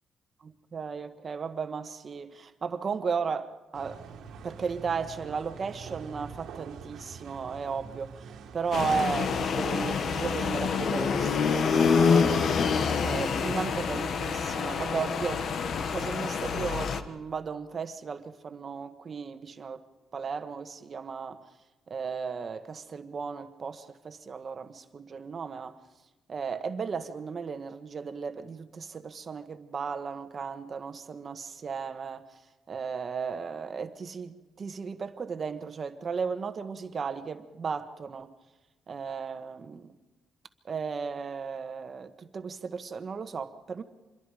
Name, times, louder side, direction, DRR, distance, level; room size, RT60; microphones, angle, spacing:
voice 1, 0.4-4.0 4.4-8.2 8.5-12.5 13.0-15.4 15.9-19.8 20.1-21.4 21.9-25.8 26.3-32.2 32.7-38.3 38.9-39.9 40.6-43.8, right 5 dB, 40° right, 1.4 m, -35 dB
sound 1, 3.7-10.2, right 6 dB, 90° right, 2.1 m, -45 dB
sound 2, 8.7-17.0, left 5 dB, 55° left, 1.3 m, -27 dB
26.0 x 22.0 x 5.0 m
cardioid pair, 125°, 0 cm